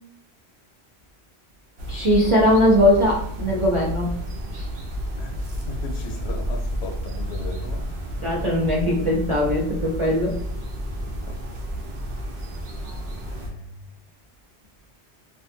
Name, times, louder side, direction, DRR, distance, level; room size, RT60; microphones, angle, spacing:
sound 1, 1.8-13.5, equal, 70° right, 0.9 m, -31 dB
voice 1, 1.9-4.1 4.5-4.6 8.2-10.4, left 1 dB, 40° right, -5 dB, 0.5 m, -20 dB
voice 2, 5.2-8.3 11.3-11.4 13.3-13.7, left 3 dB, 75° left, 3 dB, 0.8 m, -37 dB
2.5 x 2.4 x 2.5 m, 0.68 s
omnidirectional pair, 1.1 m